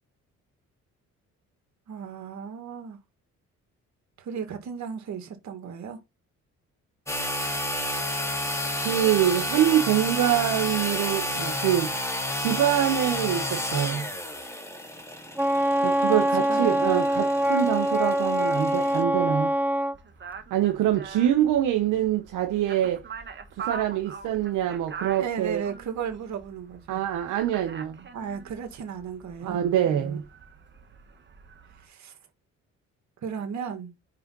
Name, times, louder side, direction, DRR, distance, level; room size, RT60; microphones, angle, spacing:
voice 1, 1.9-3.0 4.2-6.0 16.1-16.9 25.2-27.0 28.1-29.6 29.9-30.2 31.8-32.2 33.2-33.9, right 7 dB, 65° right, 2.2 m, -35 dB
sound 1, 7.1-19.0, left 1 dB, 10° left, 2.6 m, -31 dB
voice 2, 8.8-11.9 12.3-14.1 15.8-19.5 20.5-23.1 23.6-25.6 26.9-28.1 29.4-30.2, right 11 dB, 85° right, 1.0 m, -25 dB
Wind instrument woodwind instrument, 15.4-20.0, right 1 dB, 5° right, 0.6 m, -24 dB
sound 2, 19.9-31.9, right 6 dB, 40° right, 1.4 m, -43 dB
5.5 x 5.2 x 3.9 m
cardioid pair, 90°, 30 cm